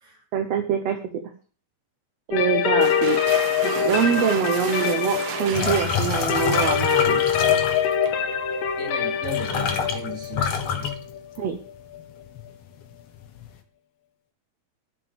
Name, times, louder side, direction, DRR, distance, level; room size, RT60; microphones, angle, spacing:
voice 1, 0.3-1.0 2.3-3.2 3.6-7.2 11.4-11.6, right 8 dB, 65° right, 6 dB, 1.8 m, -24 dB
sound 1, 2.3-12.0, left 8 dB, 80° left, 2.8 m, -24 dB
sound 2, 2.6-8.2, right 7 dB, 80° right, 3.0 m, -34 dB
sound 3, 5.5-8.1 8.9-9.0 9.2-11.7 12.0-12.5 12.8-13.5, left 7 dB, 60° left, 2.1 m, -27 dB
voice 2, 8.8-10.8, right 2 dB, 20° right, 1 dB, 3.2 m, -36 dB
11.0 x 6.9 x 7.0 m, 0.40 s
omnidirectional pair, 3.9 m